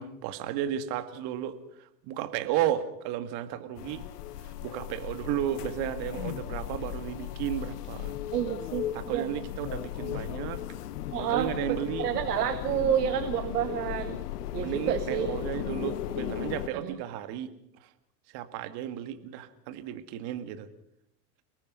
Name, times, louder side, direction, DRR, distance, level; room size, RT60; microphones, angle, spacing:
voice 1, 0.0-4.0 4.6-8.1 8.9-10.6 11.2-12.1 12.7-12.9 14.6-17.5 17.8-17.9 18.3-20.7, right 11 dB, 50° right, 10 dB, 2.2 m, -33 dB
sound 1, 3.8-16.7, left 12 dB, 70° left, 1.3 m, -36 dB
voice 2, 8.3-9.4 11.1-14.2 14.5-15.3 16.8-16.9, right 10 dB, 75° right, 10 dB, 1.8 m, -29 dB
29.5 x 19.5 x 5.5 m, 0.76 s
hypercardioid pair, 85°, 48 cm